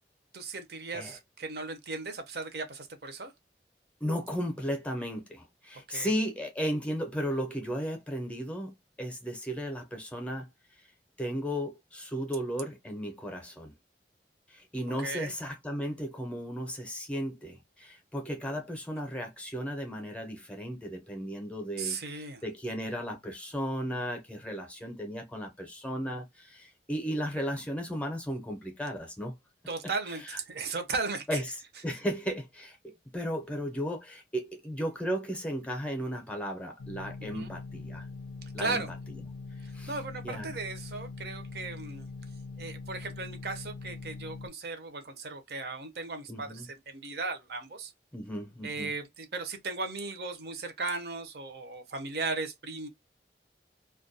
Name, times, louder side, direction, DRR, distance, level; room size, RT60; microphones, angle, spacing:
voice 1, 0.3-3.3 5.9-6.1 15.0-15.3 21.8-22.4 29.7-31.4 37.3-37.5 38.4-38.9 39.9-42.1 42.6-47.9 48.6-52.9, right 3 dB, 60° right, 0.6 m, -36 dB
voice 2, 4.0-10.5 11.2-13.7 14.5-29.3 30.2-30.4 31.3-31.6 31.8-38.1 38.5-38.8 39.7-40.0 40.2-40.5 46.3-46.7 48.1-48.9, equal, 5° left, 0.6 m, -35 dB
sound 1, 36.8-44.5, left 3 dB, 85° left, 0.5 m, -42 dB
2.3 x 2.2 x 2.6 m
head